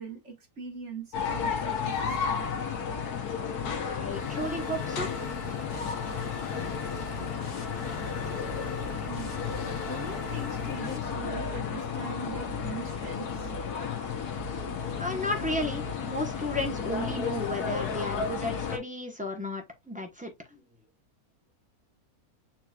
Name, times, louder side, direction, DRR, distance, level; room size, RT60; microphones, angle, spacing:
voice 1, 0.0-2.5 9.0-9.5 9.9-13.5, right 3 dB, 50° right, 1.8 m, -41 dB
sound 1, 1.1-18.8, left 6 dB, 80° left, 1.5 m, -33 dB
voice 2, 3.8-5.1 15.0-20.3, left 1 dB, 5° right, 0.9 m, -33 dB
sound 2, 4.1-11.0, left 2 dB, 40° left, 1.7 m, -41 dB
7.0 x 3.0 x 2.4 m
omnidirectional pair, 1.7 m